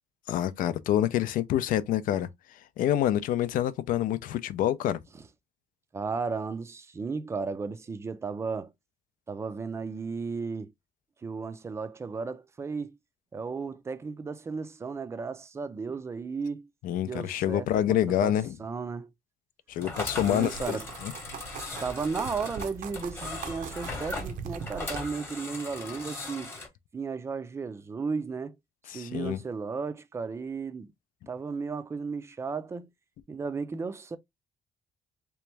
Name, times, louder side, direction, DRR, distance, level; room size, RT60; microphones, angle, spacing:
voice 1, 0.3-5.0 16.8-18.6 19.7-20.8 21.0-21.1 28.9-29.4, left 11 dB, 80° left, 0.5 m, -27 dB
voice 2, 5.9-8.7 9.3-10.7 11.2-13.0 13.3-16.7 17.0-18.3 18.6-19.1 20.3-20.9 21.8-26.5 26.9-28.5 28.9-30.9 31.3-32.9 33.3-34.2, right 4 dB, 20° right, 0.4 m, -34 dB
sound 1, 19.8-26.7, left 3 dB, 15° left, 0.9 m, -39 dB
sound 2, 19.9-25.0, right 6 dB, 70° right, 0.6 m, -41 dB
3.4 x 3.0 x 3.3 m
cardioid pair, 170°, 14 cm